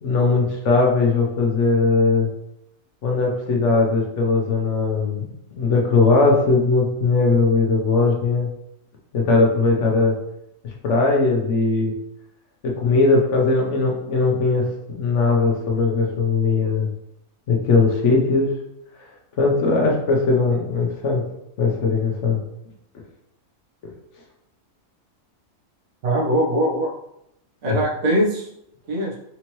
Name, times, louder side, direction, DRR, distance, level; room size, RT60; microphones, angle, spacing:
voice 1, 0.0-2.3 3.0-5.3 5.6-8.5 9.1-10.1 10.8-11.9 12.6-16.9 17.5-18.5 19.4-21.2 21.6-22.4 27.7-27.8, left 3 dB, 65° left, -1 dB, 1.1 m, -19 dB
voice 2, 26.0-26.9 27.6-28.5 28.9-29.2, right 1 dB, 85° right, -3 dB, 1.4 m, -21 dB
4.4 x 2.8 x 3.0 m, 0.80 s
omnidirectional pair, 1.4 m